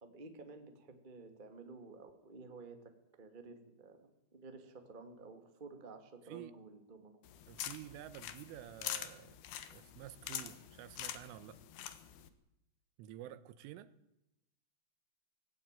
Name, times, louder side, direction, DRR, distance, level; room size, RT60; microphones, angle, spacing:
voice 1, 0.0-7.2, right 3 dB, 65° right, 0.5 m, -53 dB
sound 1, 7.2-12.3, left 11 dB, 65° left, 3.0 m, -45 dB
voice 2, 7.5-9.4 9.7-11.6 13.0-13.9, right 13 dB, 85° right, 3.6 m, -50 dB
18.5 x 16.5 x 9.1 m
omnidirectional pair, 5.6 m